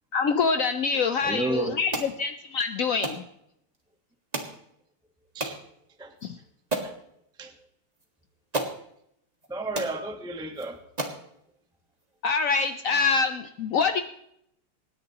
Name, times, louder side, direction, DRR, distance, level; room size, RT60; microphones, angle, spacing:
voice 1, 0.1-3.2 6.2-6.4 12.2-14.0, left 5 dB, 75° left, 8 dB, 0.7 m, -25 dB
voice 2, 0.9-1.8 5.3-5.6 6.0-6.1 6.8-6.9 7.4-7.5 9.5-10.8, right 2 dB, 5° right, 5 dB, 0.8 m, -32 dB
sound 1, 1.9-2.1 3.0-3.2 4.3-4.6 5.4-5.6 6.2-6.3 6.7-7.0 8.0-8.1 8.5-8.8 9.4-9.5 9.7-10.0 10.6-10.7 11.0-11.2, right 2 dB, 20° right, 1.6 m, -31 dB
27.0 x 10.0 x 3.0 m, 0.74 s
omnidirectional pair, 2.4 m